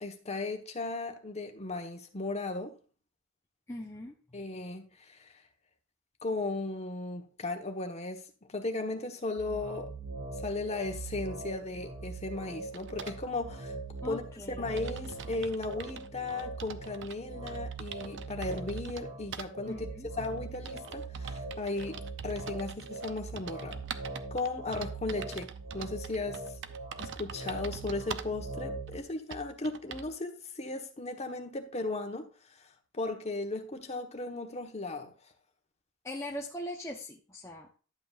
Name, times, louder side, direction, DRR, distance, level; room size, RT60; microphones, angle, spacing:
voice 1, 0.0-2.8 4.3-5.3 6.2-8.2 8.5-9.9 10.4-13.7 14.0-14.2 14.6-19.9 20.2-23.8 24.3-26.4 27.0-32.3 32.9-35.1, left 2 dB, 35° left, 1.3 m, -36 dB
voice 2, 3.7-4.4 14.0-14.7 19.7-20.1 36.0-37.8, left 1 dB, 15° left, 0.9 m, -41 dB
sound 1, 9.4-29.0, right 3 dB, 90° right, 3.9 m, -41 dB
sound 2, 12.7-13.2 14.1-14.2 14.4-14.5 14.8-17.2 17.5-19.0 19.3-19.5 20.2-28.4 28.9-29.0 29.3-30.1, right 6 dB, 65° right, 0.7 m, -44 dB
11.5 x 7.9 x 2.5 m
head